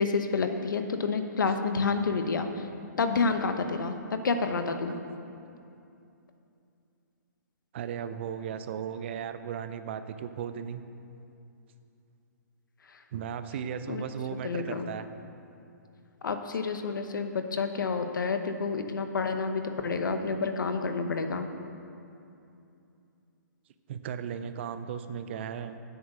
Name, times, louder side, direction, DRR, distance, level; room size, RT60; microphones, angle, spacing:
voice 1, 0.0-2.6 3.0-3.9 4.2-5.0 13.9-14.0 14.4-14.9 16.2-21.5, left 4 dB, 90° left, 7 dB, 0.9 m, -29 dB
voice 2, 7.7-10.8 13.1-15.1 23.9-25.8, right 8 dB, 35° right, 10 dB, 0.5 m, -36 dB
8.8 x 7.9 x 6.2 m, 2.7 s
hypercardioid pair, 160°, 10 cm